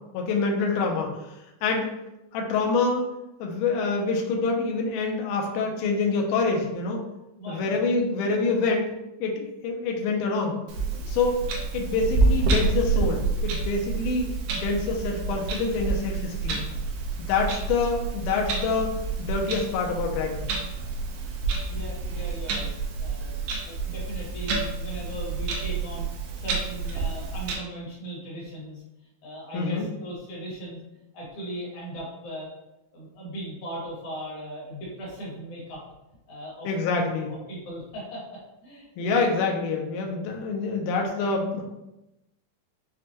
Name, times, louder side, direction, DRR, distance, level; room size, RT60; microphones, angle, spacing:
voice 1, 0.1-1.2 1.6-1.9 2.3-3.1 3.4-7.0 7.5-8.9 9.2-10.6 11.1-11.4 11.7-14.3 14.6-16.7 17.3-20.5 29.5-29.9 36.6-37.3 39.0-41.6, left 4 dB, 80° left, 1 dB, 1.9 m, -26 dB
voice 2, 7.4-7.8 21.7-22.7 23.0-23.3 23.6-26.1 26.3-30.8 31.1-32.5 32.9-35.8 36.3-36.7 36.9-37.0 37.3-39.2 40.1-40.2, right 1 dB, 60° left, -5 dB, 2.4 m, -38 dB
Clock, 10.7-27.5, right 4 dB, 85° right, 2.3 m, -28 dB
6.4 x 2.2 x 2.8 m, 0.93 s
omnidirectional pair, 4.1 m